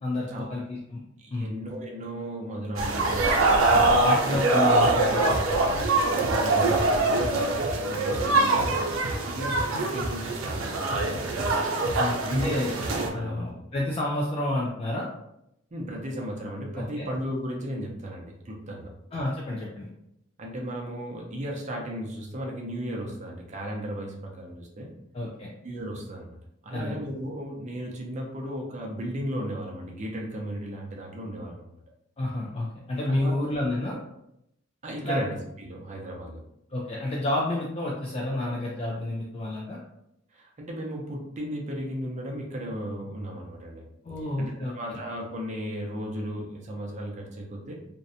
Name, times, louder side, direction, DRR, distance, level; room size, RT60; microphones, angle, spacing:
voice 1, 0.0-1.0 1.3-1.5 3.7-5.6 12.0-12.7 13.1-15.1 16.8-17.1 19.1-19.9 25.1-25.5 26.7-27.0 32.2-34.0 35.0-35.2 36.7-39.8 44.0-45.0, left 1 dB, 30° left, -3 dB, 0.3 m, -30 dB
voice 2, 1.2-4.1 6.1-8.8 9.2-11.5 12.2-12.7 13.1-13.5 15.7-18.9 20.4-24.9 25.6-26.4 26.6-31.7 33.1-33.5 34.8-36.4 40.3-43.8 44.4-47.8, equal, 35° right, 0 dB, 0.5 m, -35 dB
sound 1, 2.8-13.1, right 2 dB, 90° right, 0.5 m, -24 dB
2.5 x 2.1 x 2.6 m, 0.80 s
head